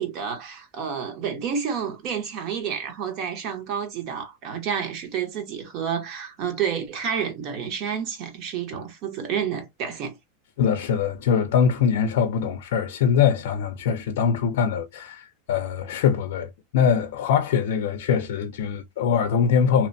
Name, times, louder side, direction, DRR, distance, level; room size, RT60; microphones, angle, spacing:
voice 1, 0.0-10.2, right 7 dB, 40° right, 1.0 m, -29 dB
voice 2, 10.6-19.9, left 7 dB, 70° left, 0.4 m, -23 dB
2.9 x 2.1 x 2.6 m
supercardioid pair, 150°, 0 cm